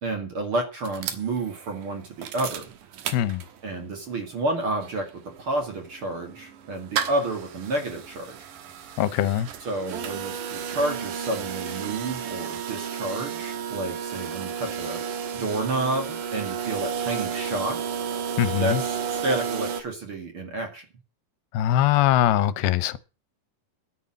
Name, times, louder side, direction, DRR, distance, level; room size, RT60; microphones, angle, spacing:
voice 1, 0.0-2.6 3.6-8.4 9.6-15.0 15.3-17.8 18.6-20.8, right 2 dB, 40° right, 2.6 m, -30 dB
sound 1, 0.8-3.8 4.2-4.3 4.5-19.8, right 7 dB, 65° right, 2.6 m, -32 dB
voice 2, 3.1-3.4 9.0-9.5 18.4-18.8 21.5-23.0, left 12 dB, 80° left, 2.7 m, -22 dB
11.0 x 9.8 x 7.6 m
omnidirectional pair, 4.4 m